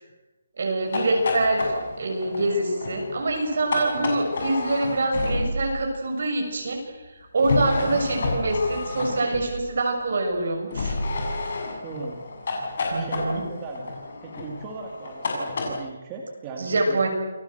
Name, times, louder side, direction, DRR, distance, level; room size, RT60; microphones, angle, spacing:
voice 1, 0.6-6.8 7.2-11.0 12.9-13.4 16.6-17.1, right 2 dB, 45° right, 2 dB, 6.8 m, -25 dB
sound 1, 0.8-5.8 7.4-9.7 10.7-15.7, left 2 dB, 40° left, 7.4 m, -30 dB
voice 2, 11.8-12.2 12.9-13.9 14.2-17.1, right 3 dB, 15° right, 0 dB, 2.2 m, -38 dB
29.0 x 20.5 x 7.9 m, 1.1 s
hypercardioid pair, 180°, 0 cm